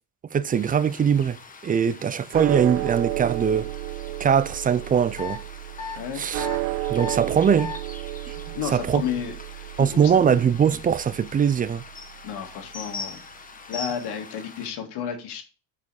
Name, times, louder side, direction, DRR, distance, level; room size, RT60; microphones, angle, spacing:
voice 1, 0.3-1.4 1.6-3.7 4.2-5.4 6.1-6.5 6.9-7.7 8.3-8.4 8.7-9.0 9.8-11.8, right 7 dB, 20° right, 0.4 m, -21 dB
sound 1, 0.5-14.7, left 4 dB, 20° left, 1.0 m, -43 dB
sound 2, 2.3-12.8, right 16 dB, 90° right, 0.6 m, -33 dB
sound 3, 5.2-5.4 5.8-6.0 6.4-6.6 7.0-7.2 7.6-7.8, left 6 dB, 50° left, 2.5 m, -33 dB
voice 2, 8.5-10.1 12.2-13.2 13.7-15.4, left 8 dB, 65° left, 2.0 m, -32 dB
7.0 x 5.0 x 4.7 m
supercardioid pair, 105°, 43 cm